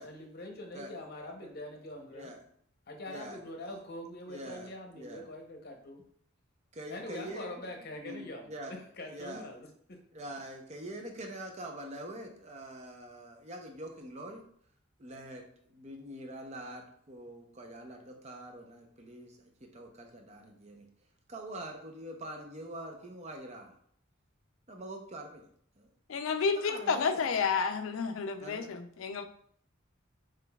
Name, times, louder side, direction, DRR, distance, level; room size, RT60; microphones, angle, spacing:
voice 1, 0.0-2.3 2.9-6.0 6.9-9.7, left 1 dB, 50° left, 3 dB, 0.8 m, -44 dB
voice 2, 3.1-3.4 3.7-3.8 4.3-5.3 6.7-7.6 8.0-8.7 9.1-9.5 10.1-14.4 15.0-20.9 21.3-23.7 24.7-25.5 25.8-25.9 26.4-27.2 28.4-28.7, right 1 dB, 35° right, 3 dB, 0.6 m, -44 dB
voice 3, 26.1-29.2, left 5 dB, 80° left, 8 dB, 0.4 m, -30 dB
5.8 x 3.2 x 2.3 m, 0.63 s
head